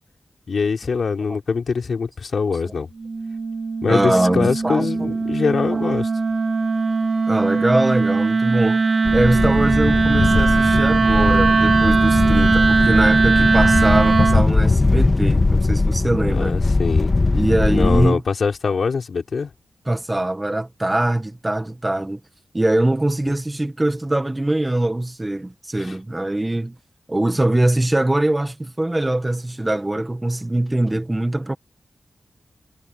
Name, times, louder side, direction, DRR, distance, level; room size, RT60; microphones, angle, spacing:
voice 1, 0.5-2.9 3.8-6.1 16.3-17.1 17.7-19.5 25.8-25.9, left 5 dB, 70° left, 4.2 m, -23 dB
Wind instrument woodwind instrument, 3.0-14.5, right 4 dB, 55° right, 2.5 m, -19 dB
voice 2, 3.9-5.1 5.7-5.9 7.3-8.8 9.1-16.6 17.3-18.2 19.9-22.2 22.5-26.8 27.1-31.5, right 1 dB, 20° right, 1.7 m, -22 dB
sound 1, 9.0-18.1, left 3 dB, 40° left, 1.8 m, -20 dB
cardioid pair, 70°, 0 cm